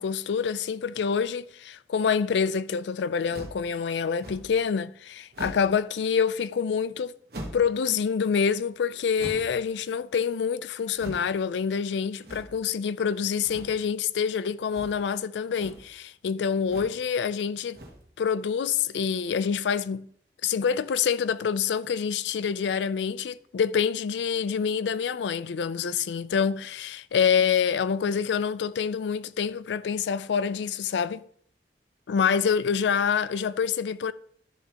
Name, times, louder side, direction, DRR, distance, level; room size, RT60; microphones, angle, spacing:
voice 1, 0.0-7.2 7.5-17.8 18.2-20.1 20.4-31.2 32.1-34.1, left 6 dB, 90° left, 0.4 m, -26 dB
sound 1, 3.3-3.7 4.2-4.6 5.3-5.8 7.3-7.7 9.2-9.6 10.9-11.3 12.2-12.7 13.4-13.8 14.7-15.1 15.4-15.9 16.6-17.0 17.7-18.1, right 1 dB, 65° right, 1.3 m, -41 dB
11.5 x 6.7 x 2.9 m
head